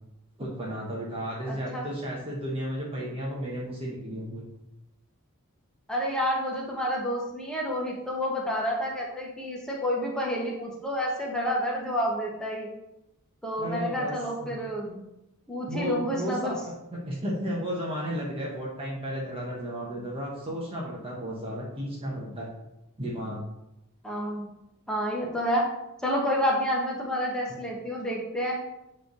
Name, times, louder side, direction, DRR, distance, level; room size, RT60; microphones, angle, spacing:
voice 1, 0.4-4.5 13.6-14.1 14.4-14.6 15.7-22.5 23.0-23.4, equal, 25° right, -4 dB, 1.0 m, -33 dB
voice 2, 1.5-1.9 5.9-12.7 13.4-15.0 15.5-16.5 24.0-24.5 24.9-25.7 26.0-28.6, equal, 5° left, -3 dB, 1.2 m, -29 dB
7.7 x 3.3 x 3.8 m, 0.89 s
head